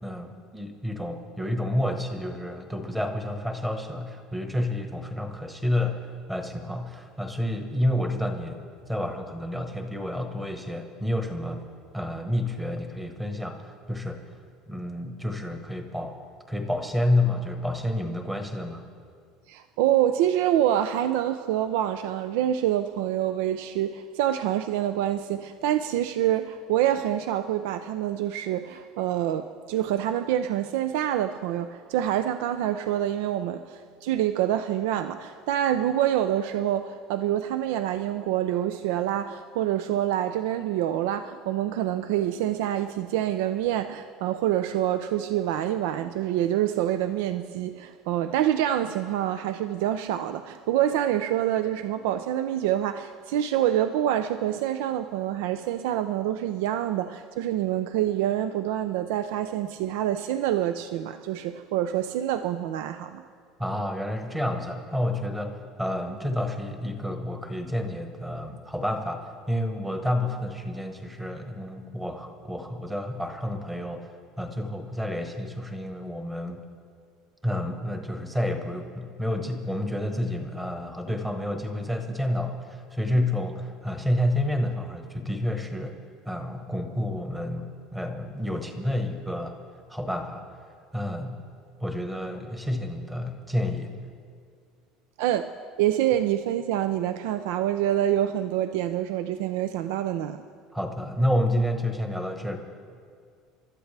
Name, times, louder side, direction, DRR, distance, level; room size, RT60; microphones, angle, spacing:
voice 1, 0.0-8.6 8.9-11.6 11.9-14.2 14.7-16.2 16.5-18.8 63.6-76.6 77.4-86.0 86.2-89.5 89.9-90.4 90.9-91.4 91.8-93.9 100.7-102.6, left 1 dB, 5° right, 1.2 m, -29 dB
voice 2, 19.5-63.2 95.2-95.5 95.8-100.4, right 11 dB, 80° right, 0.5 m, -26 dB
28.5 x 13.0 x 3.3 m
cardioid pair, 170°, 0 cm